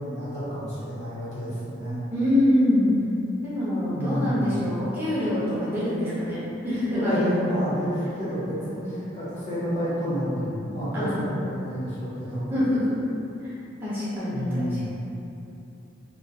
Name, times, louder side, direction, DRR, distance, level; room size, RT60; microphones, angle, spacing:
voice 1, 0.0-2.0 3.9-4.5 6.8-12.5 14.3-14.9, equal, 35° left, -11 dB, 1.0 m, -29 dB
voice 2, 2.1-3.0 3.4-7.4 10.9-11.2 12.5-13.1 13.4-13.5 13.8-14.9, left 1 dB, 10° right, -11 dB, 0.8 m, -25 dB
3.1 x 2.3 x 2.3 m, 2.8 s
head